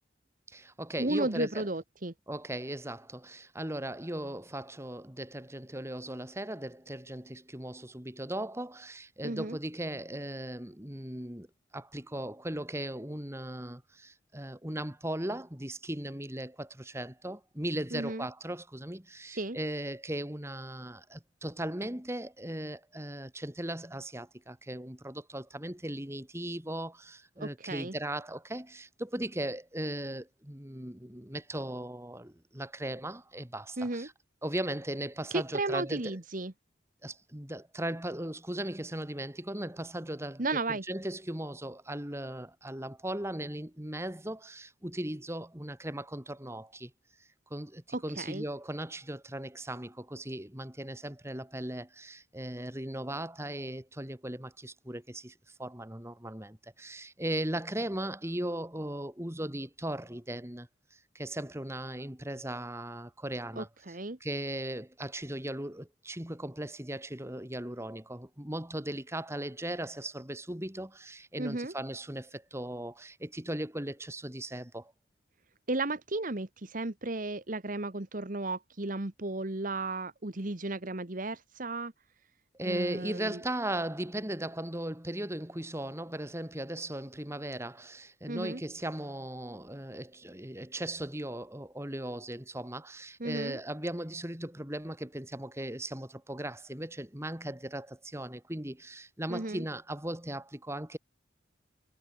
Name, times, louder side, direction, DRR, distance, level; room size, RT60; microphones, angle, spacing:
voice 1, 0.5-1.7 2.3-11.5 11.7-34.1 34.4-36.2 37.0-40.4 40.7-46.9 47.5-74.9 82.5-101.0, right 1 dB, 15° right, 2.7 m, -38 dB
voice 2, 1.0-2.1 9.2-9.6 17.9-18.3 19.3-19.6 27.4-27.9 33.8-34.1 35.3-36.5 40.4-40.8 47.9-48.4 63.6-64.2 71.4-71.7 75.7-81.9 82.6-83.4 88.3-88.6 93.2-93.6 99.3-99.6, right 2 dB, 45° right, 1.4 m, -34 dB
head